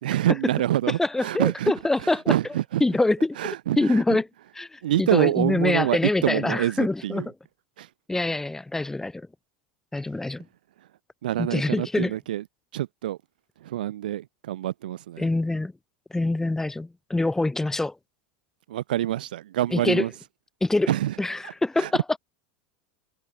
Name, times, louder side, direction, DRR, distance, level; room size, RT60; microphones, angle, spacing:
voice 1, 0.0-1.7 2.0-2.8 3.4-4.2 4.8-7.3 7.8-7.9 11.2-12.4 12.7-13.2 13.6-15.3 18.7-20.1 20.9-21.2 21.4-21.5 21.8-21.9, right 13 dB, 75° right, 2.0 m, -26 dB
voice 2, 1.0-2.3 2.8-4.3 4.6-7.3 8.1-9.3 9.9-10.5 11.4-12.1 15.2-15.7 16.1-17.9 19.7-20.0 20.6-20.9 21.2-22.0, left 2 dB, 10° left, 7.1 m, -25 dB
hypercardioid pair, 90°, 5 cm